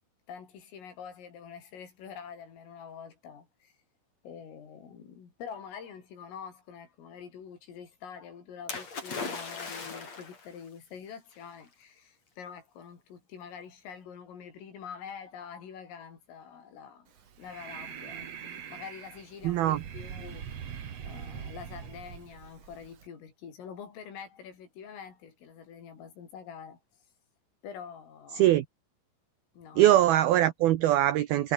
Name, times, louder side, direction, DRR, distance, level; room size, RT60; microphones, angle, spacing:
voice 1, 0.3-3.7 4.2-20.7 21.0-26.8 27.6-28.5 29.6-30.0, left 7 dB, 80° left, 7.5 m, -46 dB
Splash splatter, 8.7-10.5 11.4-11.5, left 4 dB, 35° left, 5.6 m, -38 dB
Breathing, 17.1-23.1, right 8 dB, 50° right, 2.0 m, -43 dB
voice 2, 19.4-19.8 28.4-28.7 29.8-31.5, right 13 dB, 85° right, 2.1 m, -22 dB
omnidirectional pair, 5.8 m